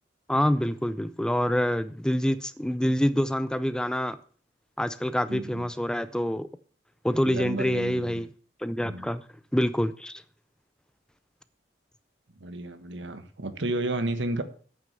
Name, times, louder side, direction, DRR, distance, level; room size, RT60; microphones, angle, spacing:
voice 1, 0.3-4.2 4.8-6.5 7.0-8.3 8.6-9.2 9.5-10.2, equal, 5° left, 0.4 m, -26 dB
voice 2, 5.3-5.6 7.2-8.2 8.8-9.0 12.4-14.4, right 2 dB, 75° right, 1.3 m, -32 dB
9.3 x 6.5 x 7.6 m
head